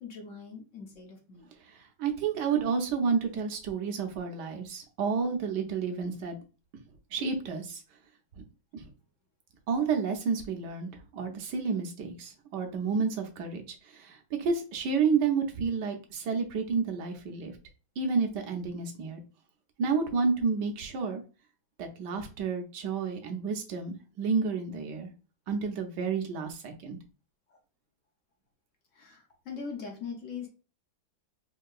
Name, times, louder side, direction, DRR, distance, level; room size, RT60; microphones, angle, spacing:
voice 1, 0.0-1.5 27.5-27.6 28.9-30.5, left 5 dB, 60° left, 2 dB, 0.8 m, -41 dB
voice 2, 1.7-6.4 7.1-7.8 8.7-8.9 9.7-17.5 18.0-19.2 19.8-21.2 21.8-25.1 25.5-27.0, right 5 dB, 70° right, 4 dB, 1.3 m, -30 dB
4.5 x 2.8 x 2.3 m, 0.34 s
omnidirectional pair, 2.0 m